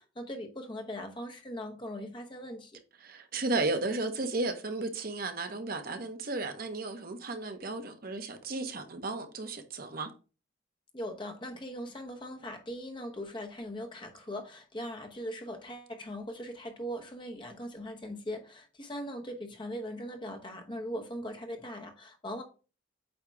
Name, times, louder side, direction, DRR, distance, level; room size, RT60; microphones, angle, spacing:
voice 1, 0.0-2.8 10.9-22.4, equal, 25° left, 1.0 m, -40 dB
voice 2, 3.0-10.1, right 3 dB, 45° right, 0.8 m, -34 dB
8.6 x 2.9 x 4.6 m
head